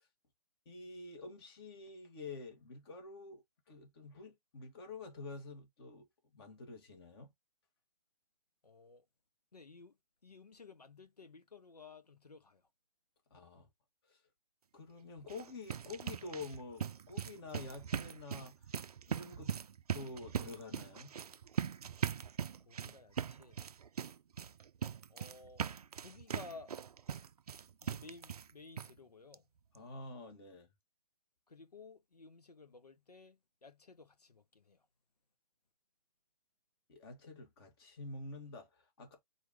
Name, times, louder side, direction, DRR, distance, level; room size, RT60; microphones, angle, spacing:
voice 1, 0.6-6.1 6.3-7.3 13.3-13.7 14.1-14.2 14.7-18.5 19.1-19.5 19.9-21.1 29.7-30.7 36.9-39.2, left 3 dB, 40° left, 1.7 m, -48 dB
voice 2, 8.6-9.1 9.5-12.7 22.6-23.6 25.1-25.7 26.0-26.7 27.8-29.5 31.5-34.9, left 4 dB, 85° left, 1.0 m, -55 dB
sound 1, 15.2-28.5 28.8-28.9 29.3-29.4 29.7-29.8, right 8 dB, 75° right, 0.4 m, -41 dB
4.5 x 2.6 x 3.6 m
figure-of-eight pair, 135°, 20 cm